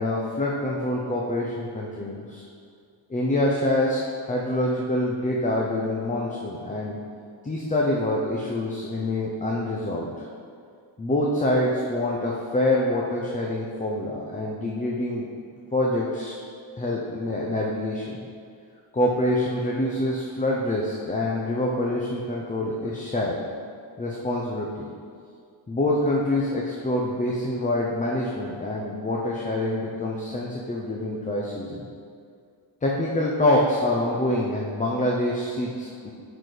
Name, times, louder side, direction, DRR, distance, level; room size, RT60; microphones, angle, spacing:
voice 1, 0.0-2.4 3.1-7.0 7.4-10.3 11.0-15.3 15.7-16.3 16.8-18.2 18.9-23.4 24.0-24.9 25.7-31.8 32.8-36.1, left 1 dB, 15° left, -3 dB, 0.6 m, -26 dB
9.1 x 4.1 x 4.9 m, 2.2 s
wide cardioid pair, 145°, 49 cm